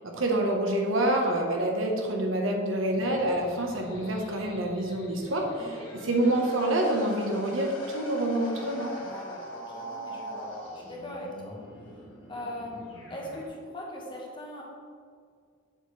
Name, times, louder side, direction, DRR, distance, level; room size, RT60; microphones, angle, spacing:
voice 1, 0.0-5.4 6.0-8.9, right 1 dB, 85° right, 1 dB, 1.2 m, -27 dB
sound 1, 2.9-13.5, equal, 80° left, 1.8 m, -43 dB
voice 2, 9.0-11.6 12.3-14.6, left 1 dB, 25° left, -2 dB, 1.3 m, -40 dB
7.4 x 6.8 x 3.3 m, 2.1 s
head